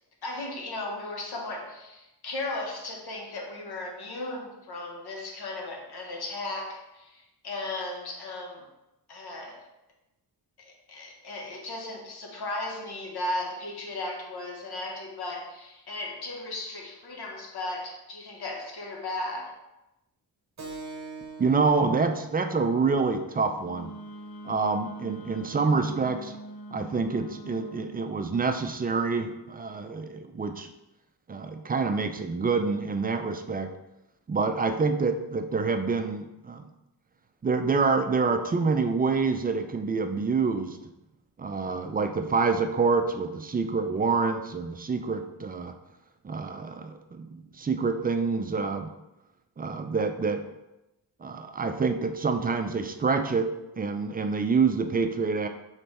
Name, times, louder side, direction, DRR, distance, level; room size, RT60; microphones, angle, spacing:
voice 1, 0.2-8.6 9.1-9.6 10.6-19.5, left 2 dB, 65° left, 0 dB, 1.1 m, -36 dB
Keyboard (musical), 20.6-25.7, right 4 dB, 40° right, 0.8 m, -46 dB
voice 2, 21.4-23.9 24.4-26.4 26.7-30.7 31.3-33.7 34.3-36.7 37.4-40.8 41.4-45.7 46.2-48.9 49.6-50.4 51.2-55.5, right 4 dB, 25° right, 7 dB, 0.4 m, -27 dB
Wind instrument woodwind instrument, 23.6-28.0, right 1 dB, 80° left, 0.5 m, -43 dB
3.3 x 3.3 x 4.1 m, 0.94 s
cardioid pair, 65°, 42 cm